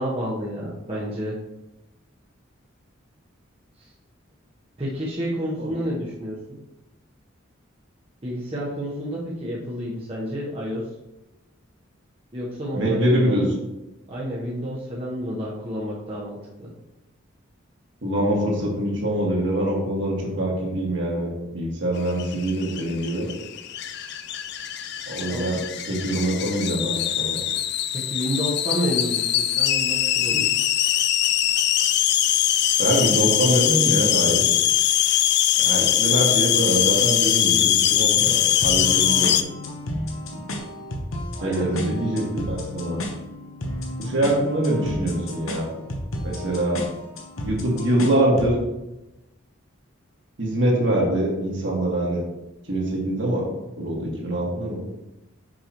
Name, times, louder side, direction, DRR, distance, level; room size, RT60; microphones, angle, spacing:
voice 1, 0.0-1.4 4.8-6.6 8.2-10.9 12.3-13.4 14.1-16.7 25.3-25.4 27.9-30.5 41.4-41.8, equal, 30° right, -6 dB, 1.0 m, -30 dB
voice 2, 12.7-13.4 18.0-23.3 25.1-25.6 25.9-27.4 32.8-34.4 35.6-39.4 41.4-43.0 44.0-45.7 46.2-46.8 47.5-48.5 50.4-52.2 52.7-53.5 53.8-54.8, right 1 dB, 60° right, -2 dB, 1.8 m, -24 dB
sound 1, 22.1-39.4, left 11 dB, 55° left, 0.4 m, -22 dB
sound 2, 38.6-48.6, left 1 dB, 90° left, 1.0 m, -32 dB
6.3 x 5.7 x 3.0 m, 0.96 s
head